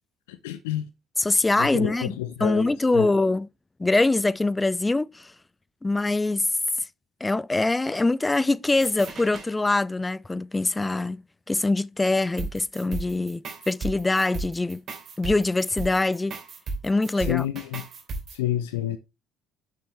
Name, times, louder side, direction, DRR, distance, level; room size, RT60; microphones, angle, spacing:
voice 1, 0.3-0.8 1.6-2.7 2.9-3.1 17.3-17.8 18.3-19.0, left 13 dB, 75° left, 0.6 m, -29 dB
voice 2, 1.2-3.5 3.8-5.3 5.8-6.5 7.2-11.2 11.5-14.8 15.2-16.4 16.8-17.5, left 2 dB, 20° left, 0.4 m, -24 dB
sound 1, 8.8-9.5 12.4-18.4, right 3 dB, 50° right, 3.1 m, -35 dB
9.7 x 7.1 x 3.3 m
figure-of-eight pair, 50°, 0 cm